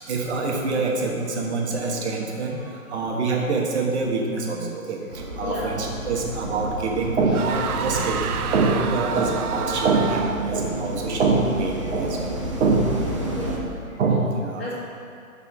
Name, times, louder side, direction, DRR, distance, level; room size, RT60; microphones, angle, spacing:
voice 1, 0.1-2.6 2.9-5.0 5.4-12.9 13.3-13.4 14.0-14.7, right 3 dB, 50° right, 0 dB, 1.3 m, -24 dB
voice 2, 2.8-3.1 5.4-5.8 13.3-13.8 14.6-14.7, left 2 dB, 40° left, -6 dB, 1.6 m, -34 dB
sound 1, 5.1-13.6, right 1 dB, 25° right, 0.4 m, -31 dB
sound 2, 7.3-10.7, right 7 dB, 80° right, 0.6 m, -29 dB
6.1 x 5.5 x 5.4 m, 2.5 s
hypercardioid pair, 140°, 44 cm